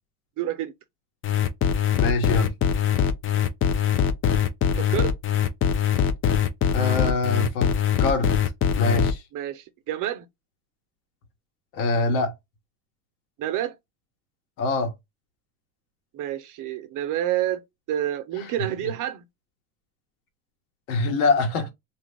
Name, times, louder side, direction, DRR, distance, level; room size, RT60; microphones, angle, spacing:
voice 1, 0.4-0.7 4.7-5.1 9.3-10.3 13.4-13.7 16.1-17.6 17.9-19.2, right 12 dB, 45° right, 0.7 m, -28 dB
sound 1, 1.2-9.1, left 8 dB, 30° left, 0.5 m, -22 dB
voice 2, 2.0-2.5 6.7-7.7 8.0-8.3 8.8-9.2 11.7-12.3 14.6-14.9 20.9-21.7, left 3 dB, 80° left, 1.4 m, -24 dB
2.8 x 2.3 x 3.4 m
supercardioid pair, 105°, 42 cm